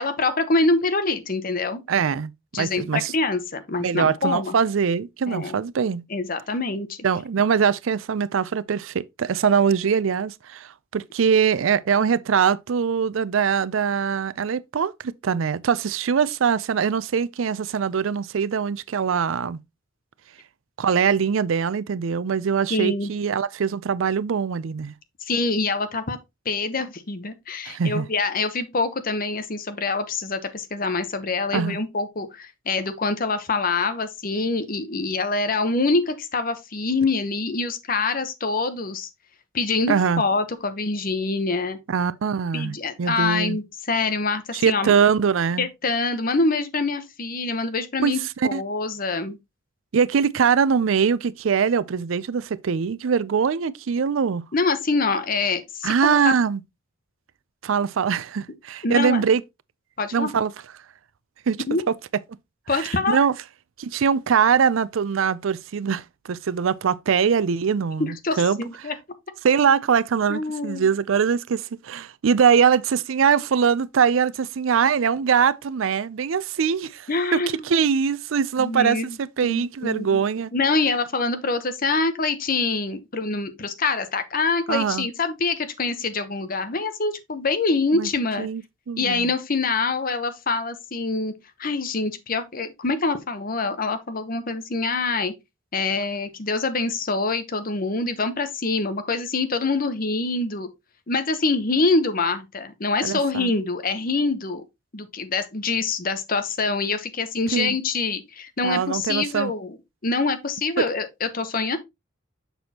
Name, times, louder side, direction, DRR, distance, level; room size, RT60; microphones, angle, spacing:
voice 1, 0.0-1.8 2.5-4.5 5.3-5.6 6.1-7.0 22.7-23.1 25.2-26.2 26.4-39.1 39.5-41.8 42.5-44.9 45.6-49.4 54.5-56.4 58.8-59.3 60.0-60.3 61.7-61.8 62.7-63.2 68.0-68.9 70.3-70.9 77.1-77.7 78.6-79.2 79.4-80.2 80.5-88.5 89.0-91.3 91.6-95.3 95.7-100.7 101.1-104.6 104.9-109.8 110.0-111.8, left 3 dB, 45° left, 0.9 m, -25 dB
voice 2, 1.9-2.3 2.6-3.1 3.8-6.0 7.0-19.6 20.8-24.9 27.7-28.1 31.5-31.8 39.9-40.2 41.9-43.6 44.5-45.7 48.0-48.1 48.5-48.6 49.9-54.4 55.8-56.6 57.6-59.4 60.1-60.5 61.5-61.9 62.7-63.3 63.8-68.6 69.4-80.5 84.7-85.1 87.9-88.1 88.4-88.6 88.9-89.3 103.0-103.5 107.5-107.8 108.6-109.5, right 6 dB, 80° right, 0.5 m, -22 dB
6.8 x 6.1 x 2.8 m
head